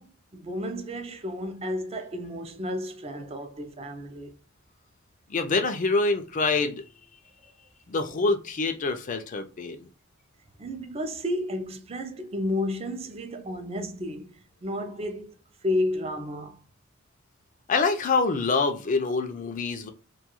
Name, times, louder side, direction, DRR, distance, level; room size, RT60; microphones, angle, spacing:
voice 1, 0.0-4.3 10.6-15.3 15.6-16.6, left 1 dB, 30° right, 0.4 m, -32 dB
voice 2, 5.3-6.8 7.9-9.9 17.7-19.9, left 3 dB, 40° left, 0.4 m, -26 dB
2.3 x 2.3 x 2.9 m
head